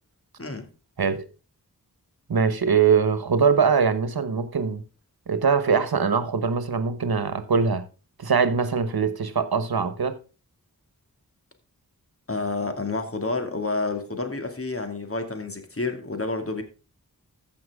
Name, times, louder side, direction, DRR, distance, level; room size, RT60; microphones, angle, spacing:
voice 1, 0.4-0.7 12.3-16.6, left 3 dB, 40° left, 2.3 m, -29 dB
voice 2, 2.3-4.8 5.3-7.8 8.2-10.2, right 5 dB, 90° right, 1.2 m, -22 dB
14.5 x 6.0 x 3.6 m
wide cardioid pair, 45°, 36 cm